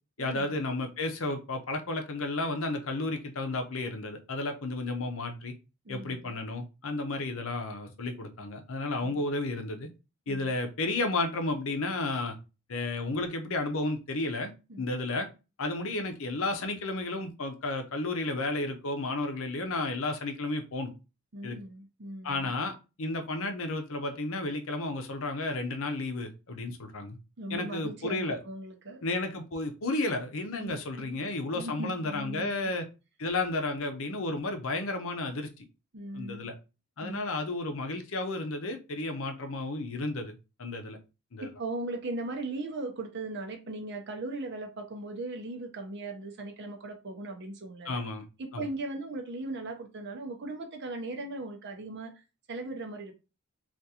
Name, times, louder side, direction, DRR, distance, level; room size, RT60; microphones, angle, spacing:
voice 1, 0.2-5.5 5.9-9.9 10.3-12.4 12.7-14.5 14.8-15.3 15.6-20.9 21.4-21.6 22.2-27.2 27.5-28.4 29.0-32.9 33.2-35.5 36.1-36.5 37.0-40.3 40.6-41.0 41.3-41.5 47.8-48.2 48.5-48.7, left 2 dB, 60° left, 0.7 m, -32 dB
voice 2, 5.8-6.3 9.0-9.2 10.3-10.5 14.7-14.9 21.3-22.5 27.4-29.0 30.6-31.2 31.5-32.7 35.9-36.5 37.0-37.2 41.4-48.0 48.4-52.1 52.5-53.2, right 2 dB, 50° right, 0.7 m, -38 dB
3.6 x 2.5 x 2.8 m
head